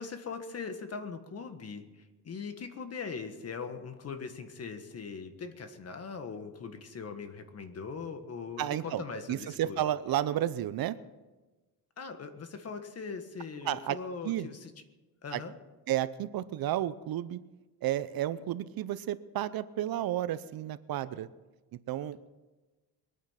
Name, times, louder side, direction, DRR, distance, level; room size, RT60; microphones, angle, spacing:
voice 1, 0.0-9.8 12.0-14.7 15.2-15.6, left 5 dB, 40° left, 8 dB, 1.6 m, -41 dB
voice 2, 8.6-9.0 9.3-11.0 13.6-14.0 14.2-14.5 15.3-15.4 15.9-17.4 17.8-21.3 21.9-22.2, right 12 dB, 60° right, 15 dB, 0.7 m, -32 dB
23.0 x 9.4 x 5.8 m, 1.2 s
cardioid pair, 130°, 40 cm